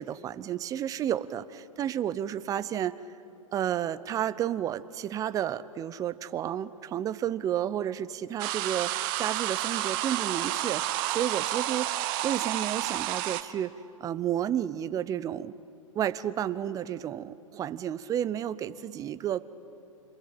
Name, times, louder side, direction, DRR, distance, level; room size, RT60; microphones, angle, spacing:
voice 1, 0.0-3.0 3.5-13.7 14.0-15.5 15.9-19.4, right 10 dB, 20° right, 16 dB, 0.7 m, -31 dB
sound 1, 8.4-13.4, right 14 dB, 40° right, 1.1 m, -30 dB
26.5 x 22.0 x 8.7 m, 2.7 s
hypercardioid pair, 115°, 18 cm